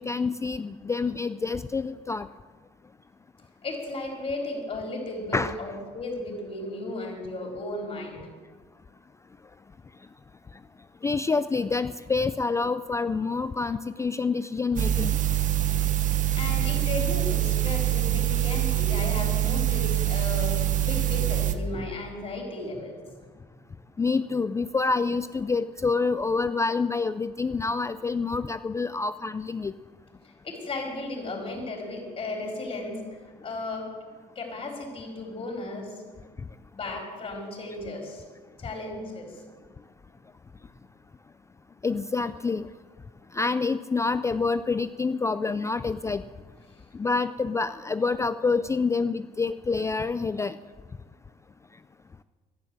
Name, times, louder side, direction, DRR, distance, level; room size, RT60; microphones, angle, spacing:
voice 1, 0.0-2.3 5.3-5.5 11.0-15.2 24.0-29.7 41.8-42.7 43.3-46.2 46.9-50.6, left 4 dB, 15° left, 13 dB, 0.3 m, -27 dB
voice 2, 3.6-8.2 16.4-22.9 30.4-33.0 33.4-33.9 34.4-35.9 36.7-38.2 38.6-39.4, left 2 dB, 35° left, 0 dB, 4.1 m, -35 dB
sound 1, 14.8-21.5, right 12 dB, 50° right, 0.9 m, -25 dB
11.5 x 10.5 x 7.5 m, 1.5 s
cardioid pair, 110°, 17 cm